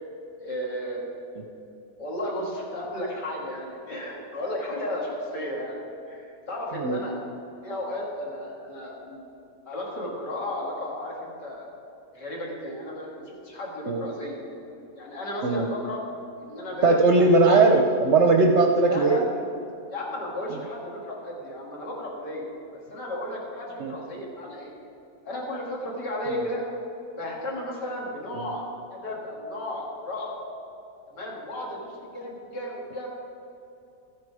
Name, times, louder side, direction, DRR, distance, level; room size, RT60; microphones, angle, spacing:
voice 1, 0.4-1.0 2.0-5.8 6.1-7.2 7.6-9.2 9.7-11.7 12.1-14.4 14.9-16.0 16.4-17.4 18.9-19.2 19.9-22.5 22.7-24.7 25.2-26.6 27.2-30.3 31.1-33.1, left 1 dB, 75° left, -3 dB, 2.8 m, -34 dB
voice 2, 16.8-19.2 23.8-23.9 26.3-26.4 28.3-28.5, right 3 dB, 60° right, 3 dB, 0.8 m, -19 dB
13.0 x 9.3 x 4.8 m, 2.7 s
omnidirectional pair, 1.8 m